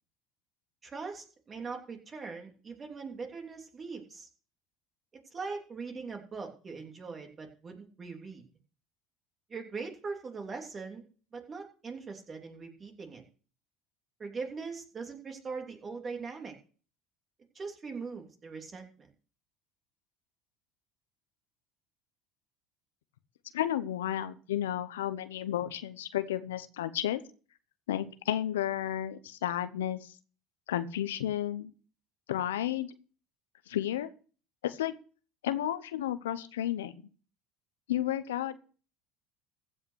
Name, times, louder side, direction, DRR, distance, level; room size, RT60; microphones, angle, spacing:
voice 1, 0.8-4.3 5.3-8.4 9.5-11.1 11.3-13.2 14.2-16.5 17.5-19.1, right 4 dB, 30° right, 3 dB, 3.1 m, -41 dB
voice 2, 23.5-27.2 27.9-30.1 30.7-31.7 32.3-32.9 33.7-34.1 34.6-34.9 35.4-36.9 37.9-38.6, left 12 dB, 90° left, 12 dB, 0.8 m, -32 dB
15.5 x 5.7 x 6.3 m, 0.40 s
hypercardioid pair, 85°, 0 cm